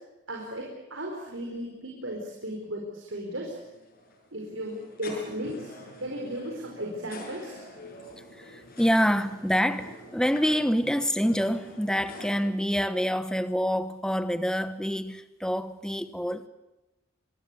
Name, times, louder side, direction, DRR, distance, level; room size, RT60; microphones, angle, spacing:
voice 1, 0.3-3.6 4.3-7.6, equal, 75° right, 4.8 m, -36 dB
sound 1, 3.5-12.4, left 1 dB, 50° left, 7.0 m, -46 dB
voice 2, 8.4-16.5, equal, 5° left, 1.0 m, -26 dB
25.5 x 20.5 x 8.3 m
head